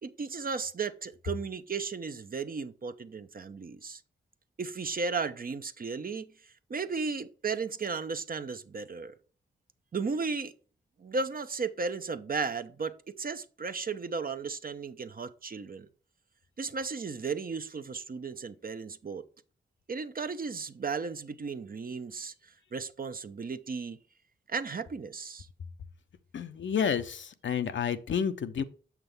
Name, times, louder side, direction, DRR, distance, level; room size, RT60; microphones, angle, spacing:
voice 1, 0.0-4.0 4.6-9.1 9.9-10.5 11.0-15.9 16.6-19.3 19.9-22.3 22.7-24.0 24.5-25.5, right 4 dB, 45° right, 0.7 m, -35 dB
voice 2, 26.3-28.6, left 7 dB, 70° left, 0.7 m, -30 dB
6.8 x 6.0 x 3.4 m
supercardioid pair, 40°, 21 cm